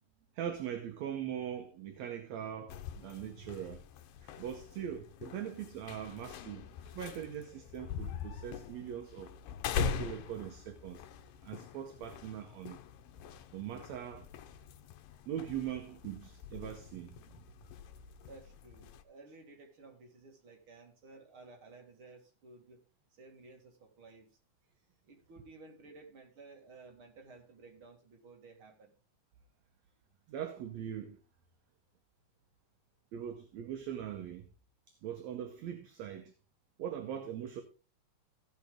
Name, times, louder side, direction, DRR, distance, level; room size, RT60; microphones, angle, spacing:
voice 1, 0.4-3.8 4.2-9.3 9.7-11.0 11.4-12.8 13.5-14.3 15.3-17.2 30.3-31.2 33.1-34.5 34.9-36.3 36.8-37.6, right 9 dB, 70° right, 1.8 m, -41 dB
sound 1, 2.7-19.0, left 7 dB, 90° left, 2.4 m, -43 dB
voice 2, 18.2-22.8 23.1-24.4 25.0-29.0, right 3 dB, 45° right, 2.2 m, -55 dB
15.5 x 6.5 x 3.5 m
omnidirectional pair, 3.8 m